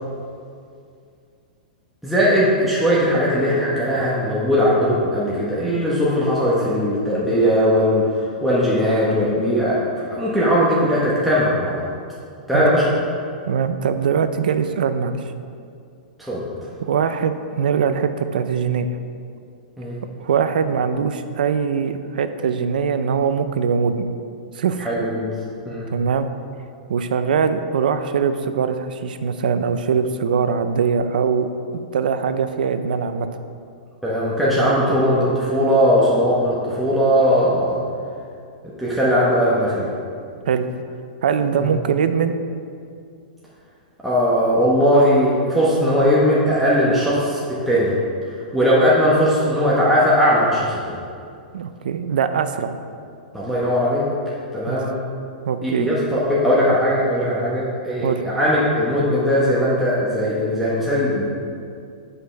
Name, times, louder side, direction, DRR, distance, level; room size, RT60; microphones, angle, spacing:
voice 1, 2.0-11.8 12.5-12.9 16.2-16.4 19.8-20.0 24.8-25.3 25.7-25.9 34.0-37.8 38.8-39.9 41.6-41.7 44.0-48.0 48.5-51.0 53.3-54.1 54.5-55.0 55.6-61.3, equal, ahead, -8 dB, 1.2 m, -19 dB
voice 2, 13.5-15.2 16.8-18.9 20.2-24.1 24.6-24.9 25.9-26.3 26.9-33.3 40.5-40.7 41.2-42.4 51.5-52.8 54.7-54.8 55.5-55.9 58.0-58.2, right 6 dB, 75° right, 10 dB, 0.5 m, -22 dB
9.2 x 5.5 x 3.4 m, 2.3 s
hypercardioid pair, 130°, 5 cm